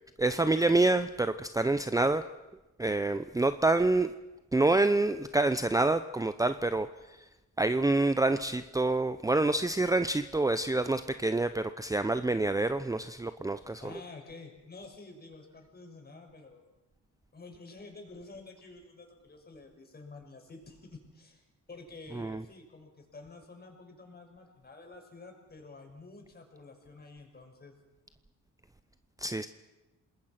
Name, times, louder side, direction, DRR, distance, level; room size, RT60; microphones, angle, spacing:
voice 1, 0.2-2.2 2.8-4.1 4.5-7.2 7.6-13.8 22.1-22.4 29.2-29.5, right 2 dB, 10° right, 11 dB, 0.8 m, -27 dB
voice 2, 13.8-16.6 17.3-27.7, left 3 dB, 30° left, 3 dB, 6.2 m, -50 dB
27.5 x 20.5 x 6.0 m, 1.0 s
cardioid pair, 90°, 30 cm